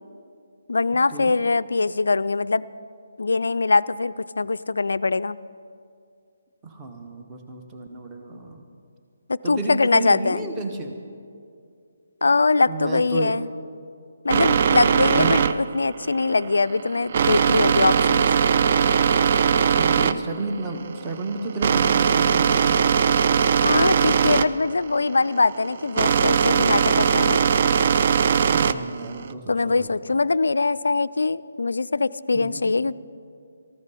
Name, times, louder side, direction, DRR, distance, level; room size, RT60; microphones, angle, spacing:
voice 1, 0.7-2.6 3.2-5.4 9.3-10.5 12.2-13.5 14.2-18.3 23.6-27.4 29.5-33.0, left 3 dB, 65° left, 16 dB, 0.3 m, -22 dB
voice 2, 6.6-8.6 9.4-10.9 12.7-13.4 15.1-15.4 19.7-22.8 28.4-30.2 32.3-32.7, right 3 dB, 15° right, 3 dB, 1.1 m, -32 dB
sound 1, 14.3-29.3, right 7 dB, 40° right, 0.4 m, -20 dB
19.0 x 14.0 x 4.2 m, 2.4 s
figure-of-eight pair, 145°, 0 cm